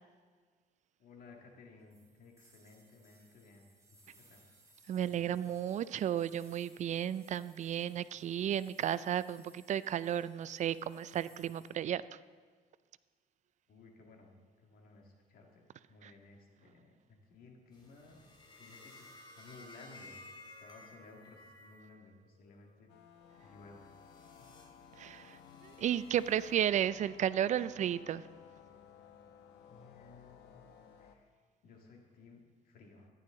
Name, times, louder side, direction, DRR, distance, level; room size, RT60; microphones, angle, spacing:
voice 1, 1.0-4.0 4.3-4.4 5.1-5.6 13.7-16.9 17.3-22.9 23.4-23.9 24.4-24.5 29.7-30.6 31.0-31.3 31.6-33.1, left 3 dB, 60° left, 1 dB, 2.0 m, -57 dB
sound 1, 1.9-11.7, right 2 dB, 20° right, 2.2 m, -65 dB
voice 2, 4.9-12.0 16.0-16.1 25.0-25.4 25.6-28.2, right 10 dB, 45° right, 17 dB, 0.4 m, -33 dB
sound 2, 17.7-21.9 22.3-22.7 23.4-26.6, left 2 dB, 25° left, 2.7 m, -56 dB
sound 3, 22.9-31.2, left 7 dB, 85° left, 0.9 m, -57 dB
14.0 x 11.0 x 3.8 m, 1.5 s
cardioid pair, 110°, 17 cm